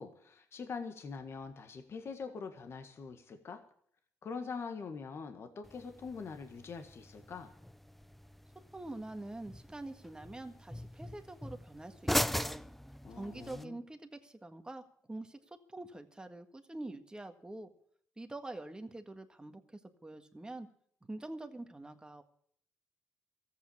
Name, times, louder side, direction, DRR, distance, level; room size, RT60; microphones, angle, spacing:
voice 1, 0.0-3.6 4.2-7.5 13.0-13.8, left 5 dB, 55° left, 6 dB, 1.6 m, -43 dB
sound 1, 5.6-13.6, equal, 5° left, 0.5 m, -40 dB
voice 2, 8.7-12.6 13.1-14.8 15.1-17.7 18.2-20.7 21.1-22.2, right 2 dB, 15° right, 7 dB, 1.7 m, -45 dB
13.5 x 8.7 x 8.6 m, 0.63 s
supercardioid pair, 65°, 5 cm